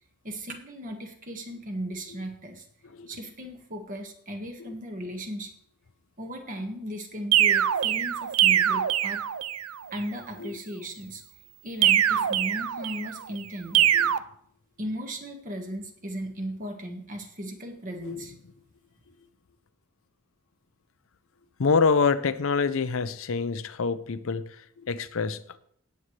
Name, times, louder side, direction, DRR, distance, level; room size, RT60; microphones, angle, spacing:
voice 1, 0.2-2.6 3.1-5.5 6.2-9.2 9.9-11.2 11.6-13.9 14.8-18.3, equal, 40° right, 1.6 m, -36 dB
sound 1, 7.3-9.7 11.8-13.2 13.7-14.2, right 11 dB, 85° right, 0.5 m, -23 dB
voice 2, 21.6-25.4, left 5 dB, 70° left, 0.6 m, -26 dB
17.0 x 7.9 x 3.3 m
head